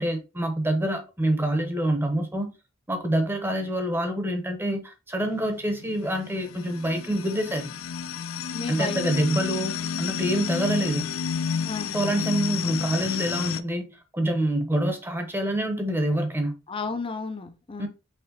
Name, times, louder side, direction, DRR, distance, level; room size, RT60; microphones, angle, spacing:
voice 1, 0.0-2.5 2.9-7.7 8.7-11.0 11.9-16.6 17.8-17.9, right 1 dB, 10° right, 0.8 m, -26 dB
sound 1, 5.2-13.6, left 7 dB, 80° left, 0.4 m, -31 dB
voice 2, 8.5-9.3 11.6-12.2 16.7-17.9, left 4 dB, 25° left, 0.5 m, -34 dB
5.7 x 3.1 x 2.8 m
head